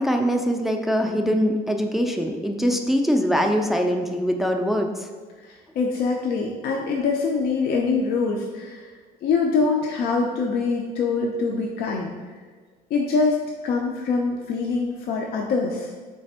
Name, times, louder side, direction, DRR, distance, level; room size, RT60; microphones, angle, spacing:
voice 1, 0.0-5.1, equal, ahead, 3 dB, 0.3 m, -23 dB
voice 2, 5.5-8.9 9.2-12.1 12.9-15.9, left 4 dB, 65° left, 0 dB, 0.5 m, -24 dB
3.3 x 3.3 x 4.2 m, 1.5 s
cardioid pair, 110°, 17 cm